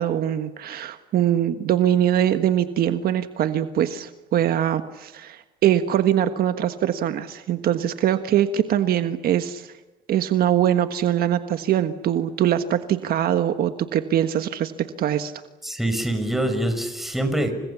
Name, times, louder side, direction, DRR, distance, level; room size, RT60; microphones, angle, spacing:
voice 1, 0.0-9.7 10.1-14.7 15.0-15.3, right 10 dB, 65° right, 9 dB, 1.4 m, -22 dB
voice 2, 15.6-17.5, right 1 dB, ahead, 6 dB, 6.2 m, -24 dB
30.0 x 25.5 x 7.2 m, 1.1 s
cardioid pair, 110°, 17 cm